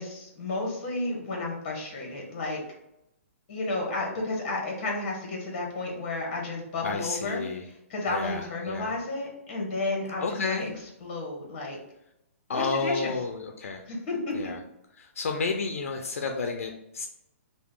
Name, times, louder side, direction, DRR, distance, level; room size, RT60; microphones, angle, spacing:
voice 1, 0.0-2.6 3.5-7.4 7.9-10.2 10.5-10.7 11.0-11.8 12.5-13.1 13.9-14.3, left 2 dB, 35° left, -1 dB, 1.1 m, -32 dB
voice 2, 6.8-7.7 8.1-9.0 10.2-10.8 12.5-13.9 14.3-14.6 15.0-17.1, left 4 dB, 75° left, 4 dB, 0.4 m, -31 dB
2.8 x 2.1 x 3.6 m, 0.84 s
hypercardioid pair, 165°, 8 cm